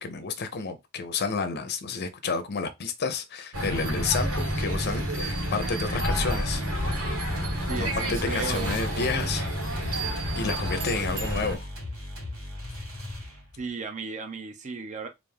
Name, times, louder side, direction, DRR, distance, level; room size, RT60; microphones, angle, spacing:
voice 1, 0.0-6.6 6.9-7.2 7.8-10.0 10.4-11.7, left 4 dB, 50° left, 0.6 m, -31 dB
sound 1, 3.5-11.6, equal, 85° right, 1.5 m, -29 dB
voice 2, 6.2-6.7 7.7-8.8 13.6-15.1, right 4 dB, 35° right, 0.5 m, -35 dB
sound 2, 7.0-13.7, left 1 dB, 70° right, 2.1 m, -38 dB
3.3 x 2.5 x 3.4 m
head